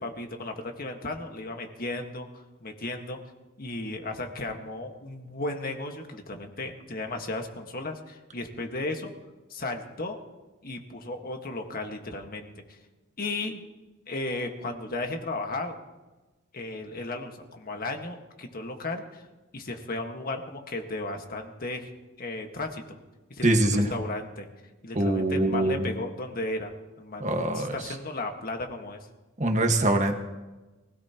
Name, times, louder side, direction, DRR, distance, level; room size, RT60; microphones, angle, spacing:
voice 1, 0.0-3.2 3.6-9.1 9.5-10.2 10.6-12.8 13.2-13.6 14.1-15.7 16.5-19.2 19.5-21.9 22.2-23.0 23.3-24.5 24.8-26.7 27.0-29.1, left 2 dB, 45° left, 4 dB, 1.6 m, -35 dB
voice 2, 23.4-23.9 24.9-25.8 27.2-27.7 29.4-30.2, right 1 dB, 35° right, 4 dB, 1.6 m, -23 dB
23.5 x 16.5 x 3.0 m, 1.1 s
head